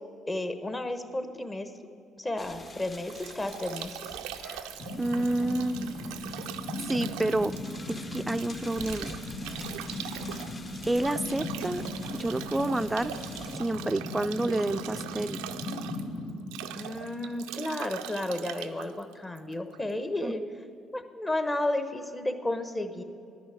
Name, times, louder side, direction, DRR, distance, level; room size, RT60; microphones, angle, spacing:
voice 1, 0.3-1.7 2.2-4.0 16.7-20.4 20.9-23.0, left 1 dB, 25° left, 8 dB, 0.9 m, -32 dB
sound 1, 2.4-13.6, left 2 dB, 45° left, 1.2 m, -48 dB
Bathtub (filling or washing) / Drip / Trickle dribble, 2.7-19.9, right 11 dB, 85° right, 0.4 m, -41 dB
sound 2, 4.8-17.5, left 2 dB, 70° left, 2.6 m, -38 dB
voice 2, 5.0-5.9 6.9-7.5 7.9-9.1 10.8-11.8 12.1-13.1 13.5-15.4 20.2-20.3, right 1 dB, 15° right, 11 dB, 0.3 m, -29 dB
10.0 x 6.2 x 8.5 m, 2.6 s
supercardioid pair, 60°, 0 cm